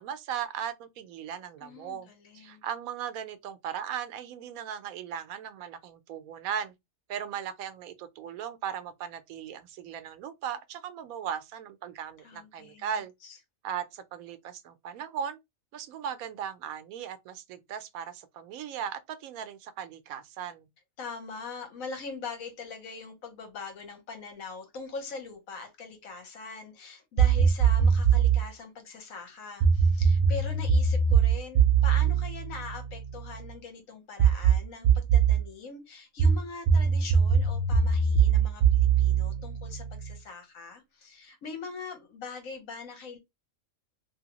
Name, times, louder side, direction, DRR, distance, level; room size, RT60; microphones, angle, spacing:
voice 1, 0.0-2.1 2.3-6.7 7.1-13.1 13.6-15.4 15.7-20.7, right 8 dB, 90° right, 1.0 m, -37 dB
voice 2, 1.6-2.6 12.2-12.9 13.2-13.4 21.0-43.2, left 4 dB, 75° left, 1.3 m, -42 dB
sound 1, 27.2-28.5 29.6-33.3 34.2-35.4 36.2-40.1, right 6 dB, 65° right, 0.5 m, -22 dB
2.8 x 2.6 x 2.9 m
omnidirectional pair, 1.4 m